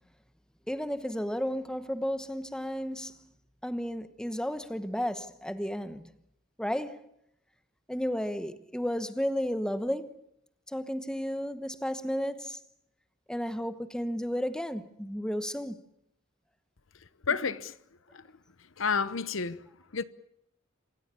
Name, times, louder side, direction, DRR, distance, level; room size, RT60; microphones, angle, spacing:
voice 1, 0.7-3.2 3.6-6.1 6.6-7.0 7.9-10.1 10.7-12.6 13.3-15.8, equal, 5° left, 1.1 m, -33 dB
voice 2, 17.3-17.8 18.1-18.3 18.8-19.6 19.9-20.0, left 5 dB, 70° left, 0.9 m, -30 dB
26.5 x 17.0 x 8.4 m
head